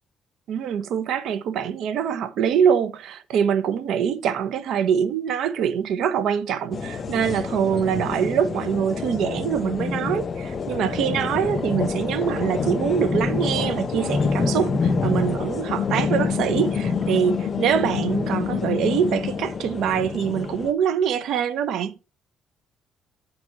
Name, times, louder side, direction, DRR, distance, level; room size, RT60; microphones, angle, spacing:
voice 1, 0.5-21.9, right 8 dB, 70° right, 0.9 m, -24 dB
sound 1, 6.7-20.7, left 4 dB, 35° left, 0.8 m, -27 dB
sound 2, 15.7-19.6, left 9 dB, 85° left, 0.5 m, -29 dB
8.2 x 4.3 x 4.9 m
cardioid pair, 145°, 0 cm